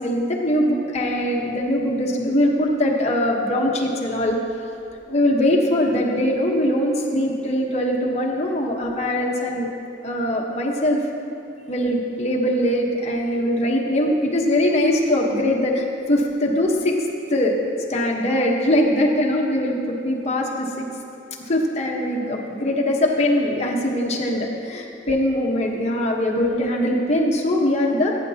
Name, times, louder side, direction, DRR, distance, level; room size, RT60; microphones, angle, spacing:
voice 1, 0.0-4.3 5.1-9.7 10.0-11.0 11.7-17.6 17.9-20.9 21.5-28.2, left 1 dB, 35° left, -2 dB, 1.2 m, -21 dB
15.5 x 9.3 x 2.9 m, 2.7 s
head